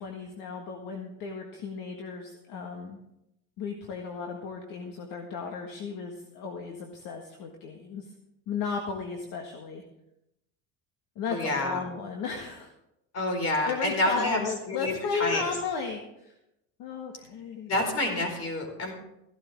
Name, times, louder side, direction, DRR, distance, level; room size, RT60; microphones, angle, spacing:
voice 1, 0.0-3.0 3.6-8.1 8.5-9.8 11.2-12.7 13.3-13.4 13.7-16.3 16.8-17.7, left 5 dB, 60° left, 3 dB, 1.7 m, -35 dB
voice 2, 11.3-11.8 13.1-15.4 17.7-18.9, left 1 dB, 45° left, 3 dB, 4.5 m, -28 dB
15.0 x 12.0 x 3.6 m, 0.84 s
cardioid pair, 120°, 36 cm